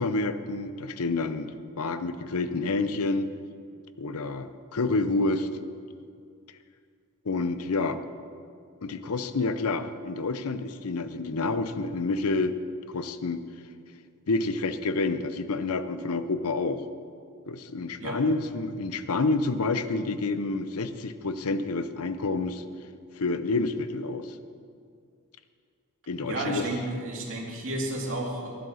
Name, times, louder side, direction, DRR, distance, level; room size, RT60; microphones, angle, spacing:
voice 1, 0.0-1.5 1.8-3.3 4.0-5.5 7.2-8.0 8.8-12.5 12.9-13.4 14.3-16.8 17.5-22.6 23.2-24.4 26.1-26.7, left 3 dB, 80° left, 11 dB, 0.7 m, -28 dB
voice 2, 26.2-28.5, right 2 dB, 65° right, -1 dB, 2.4 m, -32 dB
11.5 x 11.0 x 6.4 m, 2.3 s
head